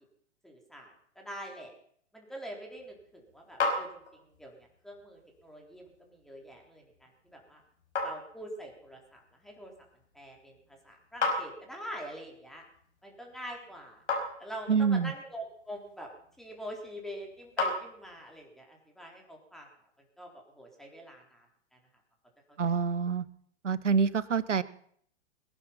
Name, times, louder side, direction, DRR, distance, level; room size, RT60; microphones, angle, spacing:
voice 1, 0.4-1.7 2.1-7.6 8.0-9.7 10.1-12.6 13.0-14.0 14.4-16.1 16.4-19.7 20.2-21.5 21.7-21.8 22.5-22.6, equal, ahead, 0 dB, 3.9 m, -45 dB
sound 1, 2.7-18.4, left 3 dB, 80° left, 5.4 m, -39 dB
voice 2, 14.7-15.1 22.6-23.3 23.6-24.6, right 6 dB, 90° right, 18 dB, 0.9 m, -26 dB
21.5 x 9.9 x 5.7 m, 0.64 s
figure-of-eight pair, 110°, 35 cm